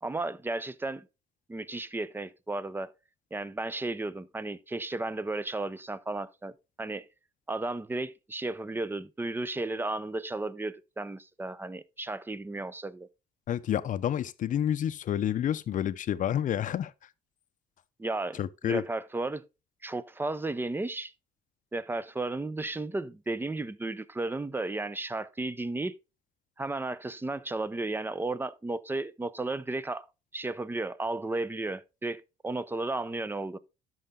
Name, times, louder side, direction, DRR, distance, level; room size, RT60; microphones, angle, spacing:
voice 1, 0.0-1.1 1.5-2.9 3.3-7.1 7.5-13.1 18.0-18.4 18.6-19.4 19.8-21.1 21.7-25.9 26.6-30.1 30.3-33.6, right 2 dB, 10° right, 0.6 m, -34 dB
voice 2, 13.5-16.9 18.4-18.8, left 10 dB, 50° left, 0.7 m, -29 dB
12.5 x 5.7 x 3.7 m
cardioid pair, 110°, 17 cm